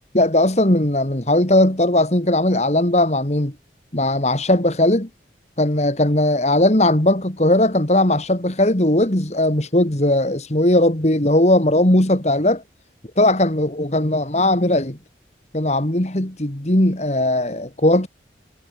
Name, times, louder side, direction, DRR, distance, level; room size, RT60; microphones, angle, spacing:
voice 1, 0.1-3.5 3.9-5.1 5.6-12.6 13.2-15.0 15.5-18.1, left 1 dB, 40° left, 2.4 m, -18 dB
head